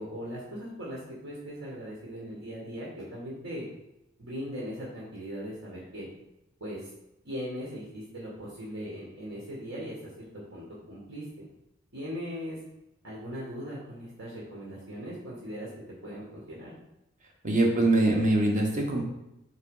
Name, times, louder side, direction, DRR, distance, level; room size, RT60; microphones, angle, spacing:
voice 1, 0.0-3.7 4.2-6.1 6.6-6.9 7.2-11.5 11.9-12.6 13.0-15.7 16.0-16.7, equal, 70° right, -5 dB, 1.8 m, -39 dB
voice 2, 17.4-19.0, right 2 dB, 40° right, 1 dB, 1.2 m, -23 dB
4.8 x 4.0 x 5.5 m, 0.90 s
head